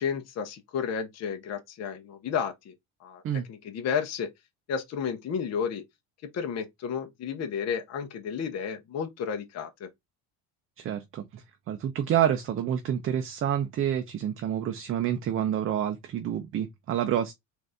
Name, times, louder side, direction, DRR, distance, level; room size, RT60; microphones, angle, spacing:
voice 1, 0.0-2.7 3.0-3.2 3.5-4.3 4.7-5.8 6.3-9.9, left 7 dB, 40° left, 0.8 m, -32 dB
voice 2, 10.8-17.3, right 10 dB, 35° right, 0.5 m, -28 dB
3.8 x 2.6 x 3.3 m
cardioid pair, 125°, 41 cm